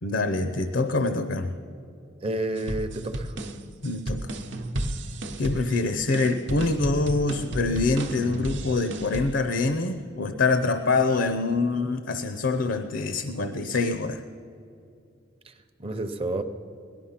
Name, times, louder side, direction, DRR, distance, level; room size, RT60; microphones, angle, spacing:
voice 1, 0.0-1.5 3.8-4.2 5.4-14.2, left 3 dB, 70° left, 8 dB, 0.7 m, -25 dB
voice 2, 2.2-3.4 15.4-15.5 15.8-16.4, right 2 dB, 30° right, 9 dB, 0.7 m, -30 dB
sound 1, 2.6-9.4, right 1 dB, 65° right, 0.9 m, -33 dB
17.5 x 12.0 x 5.8 m, 2.5 s
head